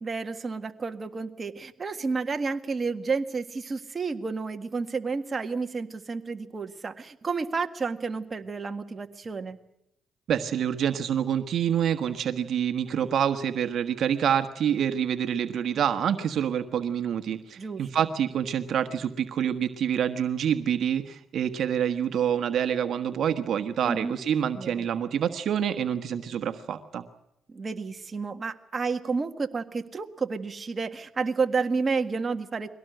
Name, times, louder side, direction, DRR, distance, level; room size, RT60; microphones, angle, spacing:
voice 1, 0.0-9.6 17.6-17.8 23.9-24.2 24.5-24.8 27.5-32.7, right 4 dB, 35° right, 6 dB, 1.7 m, -31 dB
voice 2, 10.3-27.0, right 9 dB, 65° right, 8 dB, 1.4 m, -27 dB
23.0 x 18.0 x 7.9 m, 0.80 s
cardioid pair, 90°, 0 cm